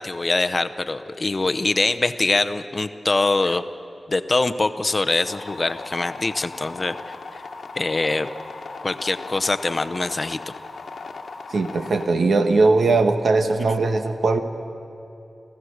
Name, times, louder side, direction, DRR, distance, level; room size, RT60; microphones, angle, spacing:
voice 1, 0.0-3.6 4.1-7.1 7.7-8.3 8.8-10.5, left 2 dB, 35° left, 10 dB, 0.7 m, -23 dB
sound 1, 5.3-12.1, left 4 dB, 75° left, 1.2 m, -38 dB
voice 2, 11.5-14.4, right 3 dB, 80° right, 7 dB, 1.3 m, -19 dB
28.5 x 15.0 x 6.4 m, 2.8 s
wide cardioid pair, 125°, 0 cm